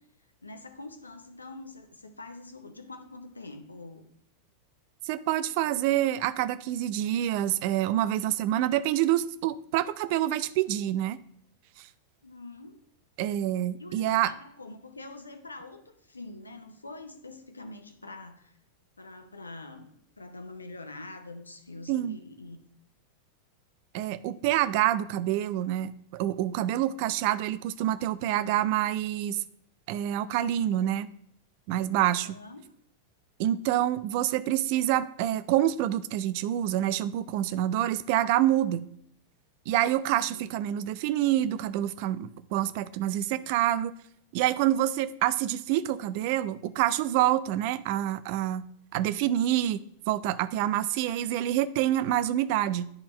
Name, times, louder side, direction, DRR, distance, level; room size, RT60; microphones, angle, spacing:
voice 1, 0.4-4.1 12.2-12.8 13.8-18.5 19.0-22.6 32.2-32.6 40.2-40.5, left 2 dB, 80° left, 8 dB, 0.7 m, -45 dB
voice 2, 5.1-11.2 11.8-11.9 13.2-14.3 21.9-22.2 23.9-29.4 29.9-31.1 31.7-32.4 33.4-38.9 39.7-43.9 44.3-48.6 48.9-52.9, right 12 dB, 45° right, 15 dB, 0.4 m, -27 dB
10.5 x 4.2 x 3.1 m, 0.70 s
figure-of-eight pair, 90°, 0 cm